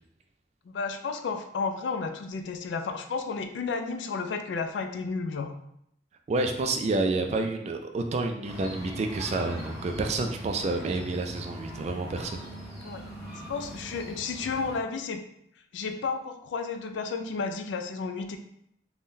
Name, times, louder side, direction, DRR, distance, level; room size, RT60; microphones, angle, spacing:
voice 1, 0.7-5.5 12.8-13.0 13.5-15.2 15.7-18.4, left 4 dB, 85° left, 7 dB, 0.3 m, -32 dB
voice 2, 6.3-12.4, right 3 dB, 35° right, 5 dB, 0.3 m, -29 dB
sound 1, 8.4-14.8, equal, 5° left, 1.1 m, -41 dB
3.6 x 2.2 x 2.6 m, 0.74 s
head